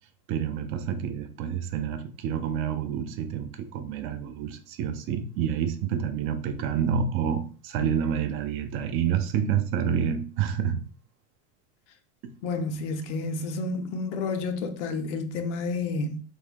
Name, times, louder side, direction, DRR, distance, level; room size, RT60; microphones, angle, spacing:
voice 1, 0.3-10.8, right 8 dB, 40° right, 0.4 m, -28 dB
voice 2, 12.4-16.2, left 3 dB, 80° left, 0.6 m, -30 dB
3.4 x 2.1 x 3.3 m
supercardioid pair, 145°, 34 cm